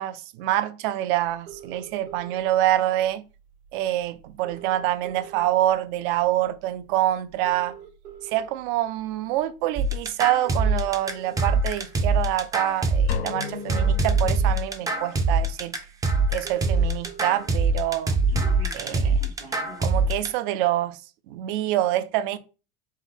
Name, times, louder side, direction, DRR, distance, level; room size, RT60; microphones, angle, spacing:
voice 1, 0.0-3.2 3.7-7.7 8.3-15.7 16.3-18.2 18.7-19.2 19.8-21.0 21.3-22.4, right 14 dB, 60° right, 0.5 m, -26 dB
sound 1, 1.5-2.5 3.6-3.7 4.0-4.1 4.3-5.7 6.2-6.4 7.3-8.4 9.2-9.4 10.3-11.5 12.7-12.8 13.3-14.4 15.1-15.2 15.5-15.6 15.9-16.0 16.1-17.4 17.8-19.9, right 7 dB, 90° right, 2.2 m, -43 dB
sound 2, 9.8-20.3, right 3 dB, 10° right, 0.4 m, -23 dB
sound 3, 13.1-15.1, left 5 dB, 90° left, 1.3 m, -35 dB
4.5 x 2.6 x 3.4 m
supercardioid pair, 135°, 30 cm